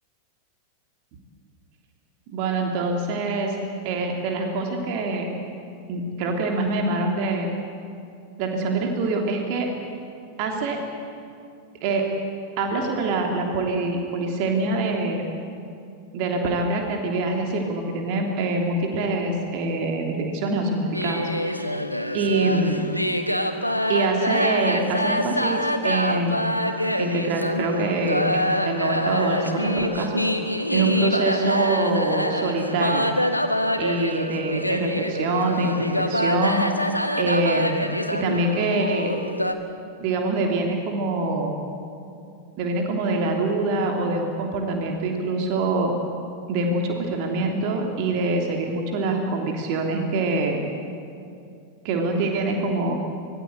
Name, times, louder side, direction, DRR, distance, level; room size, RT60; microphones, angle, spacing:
voice 1, 2.3-3.6 3.8-5.3 5.9-7.5 8.4-9.7 10.4-10.8 11.8-12.1 12.6-15.2 16.1-21.2 22.1-22.9 23.9-26.4 27.0-30.2 30.7-33.1 33.8-36.7 37.2-39.1 40.0-41.5 42.6-45.9 46.5-50.6 51.8-52.9, right 2 dB, 45° right, 2 dB, 3.2 m, -25 dB
sound 1, 20.9-39.5, equal, 90° left, 1.4 m, -25 dB
25.0 x 20.5 x 8.1 m, 2.5 s
figure-of-eight pair, 90°, 0 cm